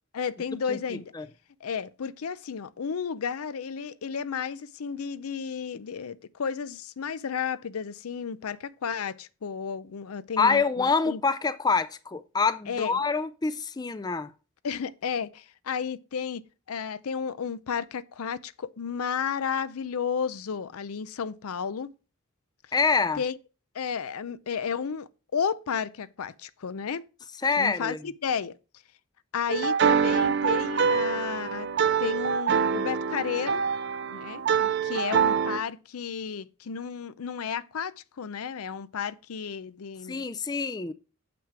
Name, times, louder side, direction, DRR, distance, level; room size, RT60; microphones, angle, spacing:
voice 1, 0.1-1.1 1.6-11.2 12.7-13.0 14.6-16.4 16.7-21.9 23.2-23.4 23.7-27.1 27.6-28.6 29.3-31.7 32.0-33.6 34.1-40.3, left 6 dB, 90° left, 0.5 m, -32 dB
voice 2, 0.7-1.3 10.4-14.3 22.7-23.2 27.4-28.0 40.1-40.9, left 4 dB, 20° left, 0.4 m, -26 dB
sound 1, 29.5-35.6, right 6 dB, 55° right, 0.5 m, -25 dB
7.3 x 6.0 x 4.8 m
head